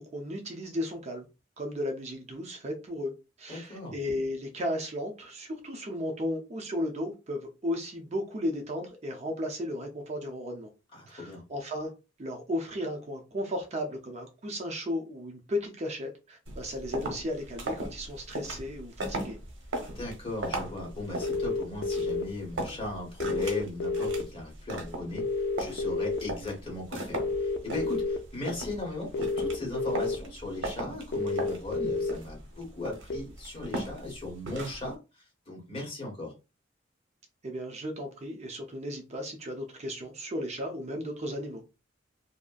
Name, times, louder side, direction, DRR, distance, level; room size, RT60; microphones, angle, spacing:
voice 1, 0.1-1.3 1.6-3.1 3.4-10.7 11.1-11.9 12.2-19.4 37.4-41.6, left 1 dB, 35° right, 0.5 m, -35 dB
voice 2, 3.5-3.9 10.9-11.4 19.8-25.2 25.6-35.0 35.5-36.3, left 2 dB, 30° left, 1.3 m, -37 dB
sound 1, 16.5-34.9, right 1 dB, 80° right, 0.8 m, -39 dB
sound 2, 21.2-22.2 23.2-24.2 25.2-26.2 27.2-28.2 29.1-30.2 31.1-32.1 33.1-33.2, left 3 dB, 60° left, 0.4 m, -29 dB
2.7 x 2.4 x 2.3 m
head